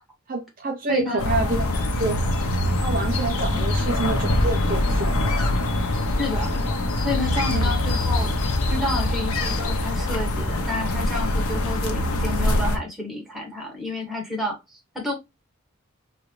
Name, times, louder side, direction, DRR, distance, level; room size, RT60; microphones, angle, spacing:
voice 1, 0.3-1.7 2.0-2.2 2.8-5.2 7.5-7.7, right 2 dB, 40° right, 0.5 m, -27 dB
voice 2, 0.9-1.2 6.2-6.6 7.0-8.3 8.7-15.1, left 2 dB, ahead, 1.3 m, -30 dB
sound 1, 1.2-12.8, left 1 dB, 90° left, 0.8 m, -23 dB
3.9 x 2.4 x 3.0 m
head